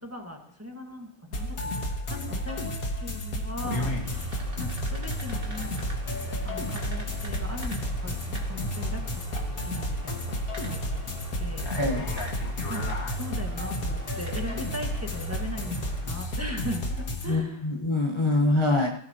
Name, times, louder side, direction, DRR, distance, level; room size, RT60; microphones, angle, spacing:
voice 1, 0.0-2.7 3.0-5.7 6.4-9.1 9.4-10.2 10.6-11.0 11.4-11.7 12.7-17.7, equal, 10° right, 1 dB, 1.4 m, -39 dB
sound 1, 1.3-17.3, left 1 dB, 45° left, 2.1 m, -31 dB
sound 2, 3.6-16.6, left 1 dB, 25° right, 2.4 m, -42 dB
voice 2, 17.3-18.9, left 2 dB, 20° left, 1 dB, 0.8 m, -24 dB
18.0 x 15.0 x 2.9 m, 0.67 s
omnidirectional pair, 2.2 m